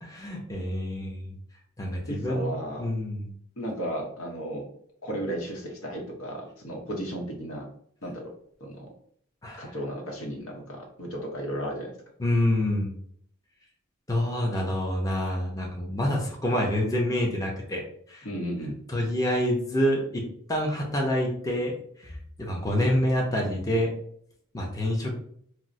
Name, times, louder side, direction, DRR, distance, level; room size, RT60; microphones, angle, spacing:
voice 1, 0.0-1.4 1.8-3.3 9.4-9.8 12.2-12.9 14.1-17.8 18.1-18.3 18.6-20.2 20.5-23.9 24.5-25.1, left 1 dB, 15° left, -1 dB, 0.5 m, -27 dB
voice 2, 2.1-2.9 3.6-4.7 5.0-7.7 8.0-8.3 8.6-8.9 9.6-11.9 18.2-18.8, equal, 90° left, 1 dB, 0.8 m, -34 dB
4.2 x 2.0 x 2.5 m, 0.64 s
head